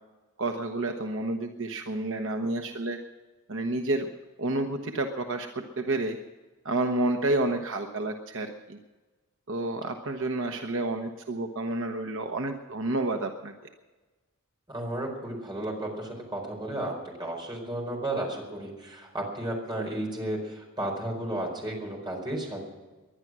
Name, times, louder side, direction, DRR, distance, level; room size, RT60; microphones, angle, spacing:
voice 1, 0.4-3.0 3.5-4.1 4.4-5.5 5.8-6.2 6.6-8.8 9.5-13.5, right 2 dB, 60° right, 4 dB, 1.0 m, -30 dB
voice 2, 14.7-22.6, right 1 dB, 20° right, 0 dB, 4.5 m, -33 dB
20.5 x 11.5 x 6.2 m, 1.2 s
head